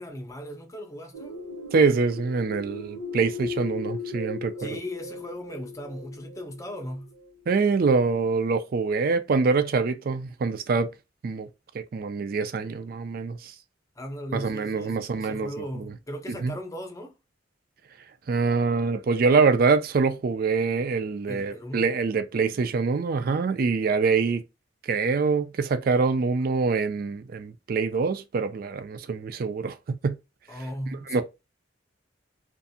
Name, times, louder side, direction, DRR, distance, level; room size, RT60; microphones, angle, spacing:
voice 1, 0.0-1.3 4.6-7.1 14.0-17.1 21.3-21.8 30.5-31.2, equal, 15° left, 0.6 m, -37 dB
sound 1, 1.1-7.7, left 2 dB, 80° right, 1.0 m, -37 dB
voice 2, 1.7-4.8 7.5-10.9 11.2-11.5 11.7-13.5 14.3-15.9 16.4-16.5 18.3-24.4 24.8-30.2 31.1-31.2, right 4 dB, 50° right, 0.4 m, -25 dB
2.5 x 2.4 x 2.6 m
head